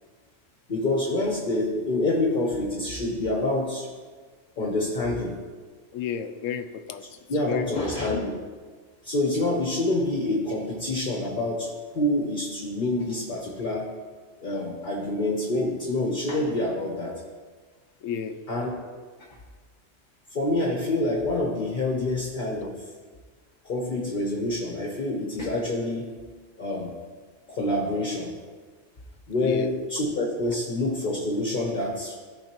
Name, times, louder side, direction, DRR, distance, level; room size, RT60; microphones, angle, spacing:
voice 1, 0.7-3.9 4.6-5.4 7.0-8.3 9.0-13.9 14.4-17.2 18.5-18.7 20.3-22.9 23.6-26.1 26.6-26.9 27.5-28.4 29.3-32.1, left 2 dB, 45° left, 0 dB, 1.1 m, -27 dB
voice 2, 5.9-7.0 7.5-7.8 18.0-18.4 29.4-29.7, left 8 dB, 85° left, 10 dB, 1.0 m, -31 dB
14.5 x 5.1 x 2.9 m, 1.5 s
omnidirectional pair, 1.3 m